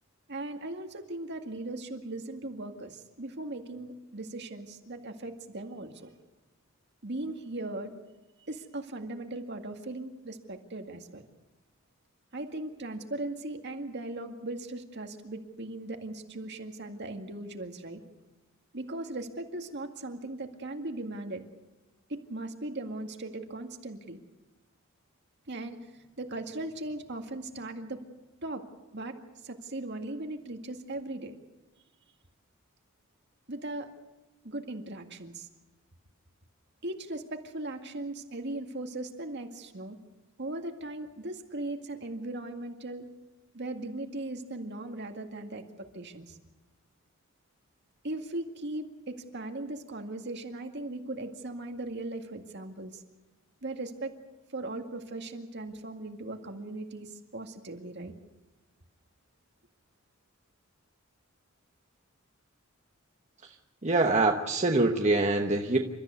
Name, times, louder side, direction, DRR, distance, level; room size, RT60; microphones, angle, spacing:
voice 1, 0.3-6.1 7.0-7.9 8.5-11.2 12.3-18.0 18.7-21.5 22.1-24.2 25.5-28.0 28.4-28.6 28.9-29.2 29.4-31.4 33.5-33.9 34.4-35.5 36.8-40.0 40.4-43.1 43.5-46.4 48.0-53.0 53.6-54.1 54.5-58.1, right 2 dB, 55° right, 5 dB, 2.1 m, -38 dB
voice 2, 63.8-65.8, right 2 dB, 35° right, 3 dB, 1.2 m, -24 dB
29.0 x 13.5 x 8.3 m, 1.1 s
head